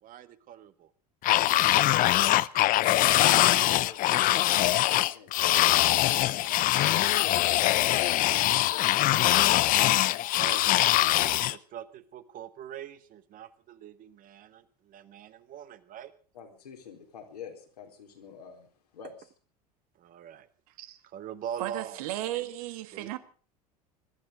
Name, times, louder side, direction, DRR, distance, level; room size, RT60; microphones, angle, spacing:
voice 1, 0.0-0.9 10.1-16.1 20.0-20.5 21.1-22.0 22.9-23.1, right 9 dB, 45° right, 1.6 m, -43 dB
sound 1, 1.2-11.6, left 15 dB, 45° left, 0.7 m, -23 dB
voice 2, 1.7-2.2 2.7-4.6 5.0-6.3 6.8-9.4 10.5-10.7 16.3-18.7 18.9-19.3, left 7 dB, 80° left, 4.1 m, -46 dB
voice 3, 21.6-23.2, right 14 dB, 65° right, 1.7 m, -35 dB
21.5 x 13.0 x 5.1 m
hypercardioid pair, 75°, 20 cm